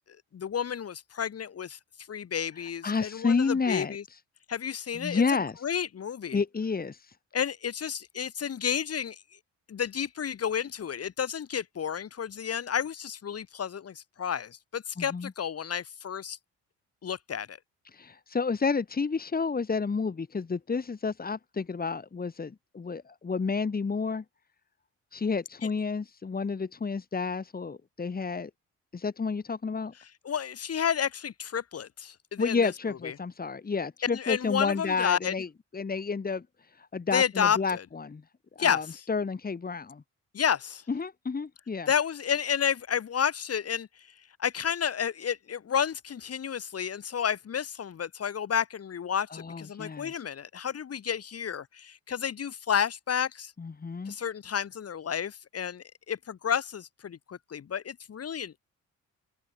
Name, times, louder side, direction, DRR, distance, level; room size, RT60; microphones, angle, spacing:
voice 1, 0.3-1.8 2.1-4.0 4.5-5.2 5.6-6.4 7.3-9.2 9.7-16.4 17.0-17.6 30.3-32.7 33.0-33.1 34.1-35.3 37.1-37.8 38.6-38.8 40.3-40.8 41.9-43.9 44.4-53.5 54.1-58.6, left 8 dB, 50° left, 5.6 m, -31 dB
voice 2, 2.6-4.2 4.9-5.6 6.3-7.2 15.0-15.3 17.9-24.2 25.1-28.5 28.9-29.9 32.4-35.5 35.7-38.2 38.5-40.0 40.9-41.9 49.3-50.2 53.6-54.2, left 4 dB, 30° left, 3.2 m, -30 dB
open air
cardioid pair, 90°, 30 cm